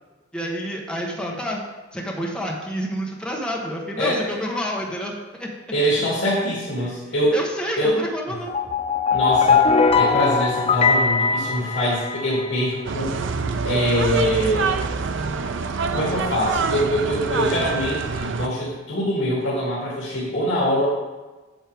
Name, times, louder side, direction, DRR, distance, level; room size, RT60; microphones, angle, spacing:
voice 1, 0.3-1.6 1.9-5.5 6.8-6.9 7.3-8.5, equal, 5° left, -2 dB, 1.1 m, -29 dB
voice 2, 5.7-7.3 7.8-8.0 8.3-8.4 9.1-9.7 9.9-13.1 13.6-14.7 15.9-20.8, equal, 65° left, -8 dB, 2.6 m, -23 dB
sound 1, 8.5-12.5, left 5 dB, 30° left, 0.5 m, -20 dB
sound 2, 12.8-18.5, right 5 dB, 65° right, 0.5 m, -25 dB
9.1 x 6.4 x 3.5 m, 1.2 s
head